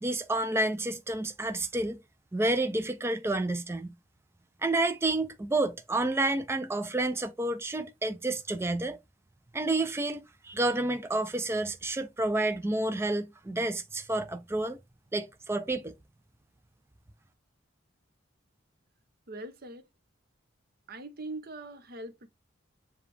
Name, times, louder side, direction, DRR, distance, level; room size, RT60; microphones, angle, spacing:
voice 1, 0.0-2.0 2.3-3.9 4.6-9.0 9.5-14.8 15.1-15.9, right 2 dB, 10° right, 0.4 m, -29 dB
voice 2, 19.3-19.9 20.9-22.3, right 2 dB, 50° right, 0.7 m, -41 dB
6.9 x 2.3 x 3.2 m
head